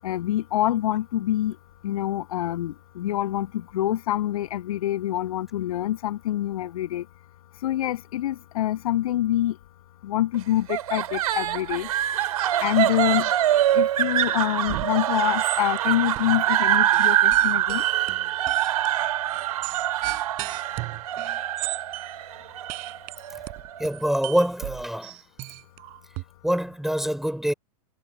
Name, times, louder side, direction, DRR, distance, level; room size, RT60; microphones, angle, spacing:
voice 1, 0.0-1.6 1.8-7.0 7.6-9.6 10.0-11.9 12.6-13.3 13.7-17.8, left 13 dB, 65° left, 7.9 m, -26 dB
sound 1, 10.7-23.9, right 12 dB, 65° right, 2.6 m, -24 dB
sound 2, 14.7-14.9 15.2-15.8 16.1-16.6 16.9-22.2 22.7-26.2, right 26 dB, 45° right, 4.2 m, -35 dB
voice 2, 23.8-25.2 26.4-27.5, equal, ahead, 4.8 m, -25 dB
hypercardioid pair, 95°, 20 cm